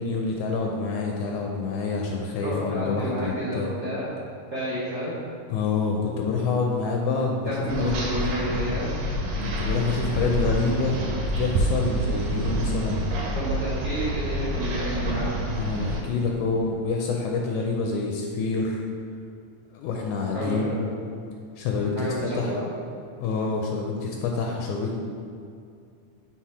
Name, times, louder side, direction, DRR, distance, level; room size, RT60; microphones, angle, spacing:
voice 1, 0.0-3.7 5.5-7.5 7.8-7.9 9.4-13.0 15.5-18.8 19.7-20.7 21.6-22.1 22.4-22.5 23.2-25.0, left 4 dB, 80° left, 0 dB, 1.8 m, -27 dB
voice 2, 2.4-4.1 4.5-5.1 7.4-8.9 13.3-15.3 20.3-20.9 22.0-22.7, equal, 70° right, -10 dB, 0.7 m, -30 dB
sound 1, 7.7-16.0, right 1 dB, 85° right, 2.5 m, -27 dB
5.8 x 4.2 x 4.7 m, 2.3 s
omnidirectional pair, 3.8 m